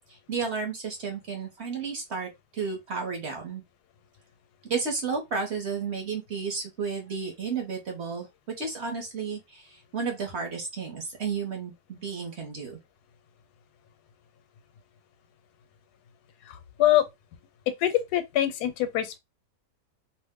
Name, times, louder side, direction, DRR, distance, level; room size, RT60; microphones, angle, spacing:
voice 1, 0.1-3.6 4.7-12.8, right 5 dB, 55° right, 0.9 m, -32 dB
voice 2, 16.4-17.1 17.7-19.2, left 12 dB, 85° left, 1.1 m, -24 dB
2.7 x 2.0 x 3.5 m
omnidirectional pair, 1.7 m